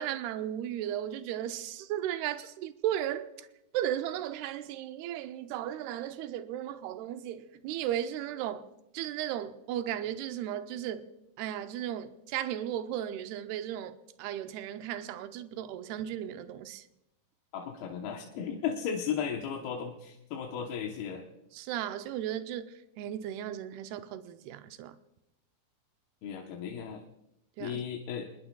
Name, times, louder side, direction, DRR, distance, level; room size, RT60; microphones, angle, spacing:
voice 1, 0.0-3.5 3.7-8.6 8.9-11.1 11.4-13.9 14.2-16.8 21.5-24.9 27.6-27.8, right 11 dB, 85° right, 2.7 m, -35 dB
voice 2, 17.5-21.3 26.2-27.0 27.6-28.3, left 7 dB, 75° left, 2.9 m, -35 dB
26.5 x 20.5 x 2.3 m
omnidirectional pair, 4.5 m